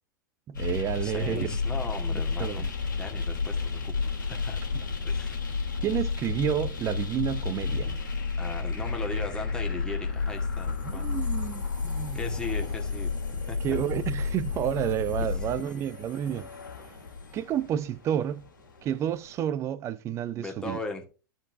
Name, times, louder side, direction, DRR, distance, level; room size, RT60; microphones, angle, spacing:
sound 1, 0.5-19.4, left 4 dB, 75° left, 2.3 m, -32 dB
voice 1, 0.5-1.6 2.1-2.7 5.8-7.9 10.8-12.2 13.6-16.5 17.3-18.5 18.8-20.8, right 10 dB, 25° right, 0.5 m, -30 dB
voice 2, 1.0-2.6 3.0-3.9 4.2-4.6 5.0-5.4 8.4-11.2 12.1-13.2 13.5-13.8 15.2-15.7 20.4-21.1, left 2 dB, 5° left, 1.9 m, -38 dB
sound 2, 1.3-2.0 2.7-2.9 3.7-3.8 4.0-4.3 5.6-5.7 5.9-6.0 6.2-6.3 7.8-8.4 10.6-11.3 12.6-13.2 14.4-14.9, right 5 dB, 45° right, 1.4 m, -46 dB
13.0 x 4.5 x 3.4 m
figure-of-eight pair, 95°, 11 cm